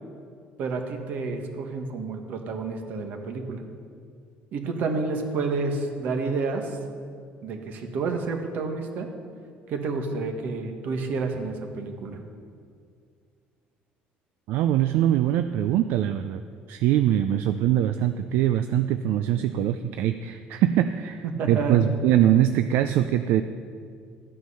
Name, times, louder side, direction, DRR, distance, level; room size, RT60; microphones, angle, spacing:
voice 1, 0.6-3.7 4.5-6.8 7.4-9.1 9.7-12.2 21.2-21.9, right 4 dB, 55° right, 4 dB, 1.5 m, -29 dB
voice 2, 14.5-16.4 16.7-23.4, right 11 dB, 70° right, 9 dB, 0.4 m, -23 dB
13.5 x 9.3 x 5.6 m, 2.2 s
cardioid pair, 155°, 4 cm